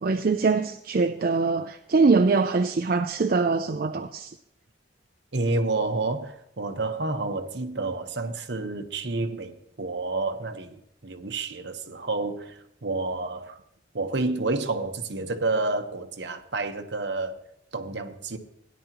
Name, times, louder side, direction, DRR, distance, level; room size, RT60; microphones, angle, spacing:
voice 1, 0.0-4.3, right 4 dB, 50° right, 0.5 m, -23 dB
voice 2, 5.3-13.6 13.9-17.4 17.7-18.4, right 3 dB, 65° right, 1.1 m, -29 dB
17.0 x 10.0 x 3.0 m
head